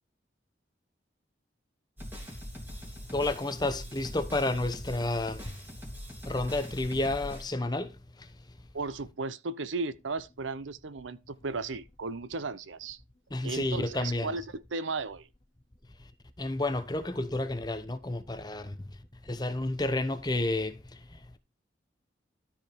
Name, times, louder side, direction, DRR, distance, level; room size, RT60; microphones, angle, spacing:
sound 1, 2.0-7.4, equal, 10° right, 2.8 m, -42 dB
voice 1, 3.1-5.5 6.2-7.9 13.3-14.3 16.4-18.8 19.3-20.8, left 2 dB, 20° left, 0.9 m, -30 dB
voice 2, 8.7-13.0 13.4-15.3, right 3 dB, 90° right, 0.7 m, -35 dB
12.5 x 5.0 x 4.5 m
head